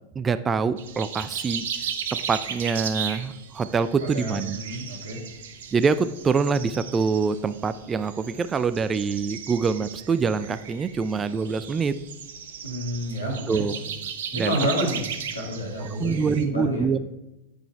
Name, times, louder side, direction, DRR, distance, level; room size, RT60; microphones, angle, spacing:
voice 1, 0.2-1.7 2.3-4.6 5.7-11.9 13.5-13.8 14.3-14.6 16.0-17.0, right 5 dB, 20° right, 13 dB, 0.4 m, -25 dB
sound 1, 0.8-16.4, right 7 dB, 60° right, 0.8 m, -36 dB
voice 2, 4.1-5.2 12.6-13.9 14.3-15.0 15.3-16.9, equal, 85° left, -3 dB, 2.5 m, -29 dB
8.3 x 5.2 x 4.6 m, 0.94 s
figure-of-eight pair, 90°, 0 cm